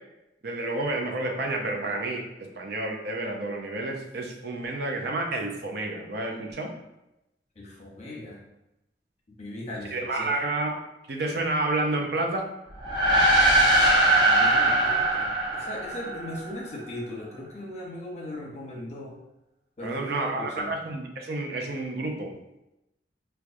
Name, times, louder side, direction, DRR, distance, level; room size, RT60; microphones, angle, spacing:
voice 1, 0.4-6.7 9.9-10.8 11.1-12.5 19.8-22.3, right 2 dB, 65° right, 2 dB, 0.5 m, -30 dB
voice 2, 7.6-8.4 9.4-10.3 14.2-19.2 19.8-20.7, left 1 dB, 40° left, -2 dB, 0.8 m, -38 dB
sound 1, 12.8-16.5, right 1 dB, 25° right, 0.9 m, -21 dB
4.6 x 2.3 x 2.6 m, 0.90 s
head